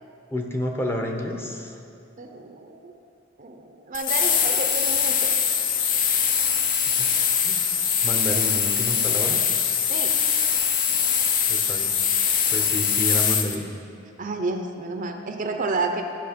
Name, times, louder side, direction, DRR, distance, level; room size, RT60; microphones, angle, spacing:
voice 1, 0.3-1.7 7.0-7.1 7.4-7.6 8.0-9.4 11.5-12.0 12.5-13.7, equal, 10° left, 2 dB, 0.8 m, -29 dB
voice 2, 2.2-2.9 3.4-5.4 9.9-10.1 14.2-16.0, right 3 dB, 40° right, 5 dB, 0.7 m, -30 dB
sound 1, 3.9-13.6, left 7 dB, 45° left, 0.7 m, -22 dB
13.5 x 6.3 x 5.2 m, 2.6 s
head